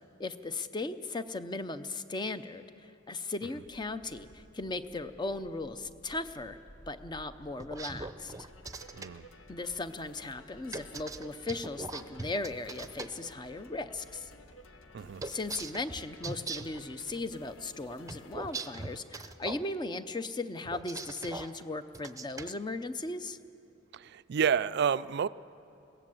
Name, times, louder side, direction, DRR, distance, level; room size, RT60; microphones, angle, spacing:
voice 1, 0.2-6.6 6.9-8.3 9.5-14.3 15.2-23.4, left 2 dB, 20° left, 11 dB, 0.6 m, -37 dB
Wind, 3.6-19.0, equal, 40° left, 1.4 m, -58 dB
sound 1, 7.6-9.1 10.7-13.1 15.2-16.8 18.1-19.6 20.6-21.5 21.9-22.5, right 3 dB, 15° right, 0.7 m, -40 dB
sound 2, 8.3-19.0, left 2 dB, 75° left, 1.0 m, -55 dB
voice 2, 23.9-25.3, right 7 dB, 55° right, 16 dB, 0.4 m, -29 dB
21.0 x 17.0 x 7.8 m, 2.8 s
head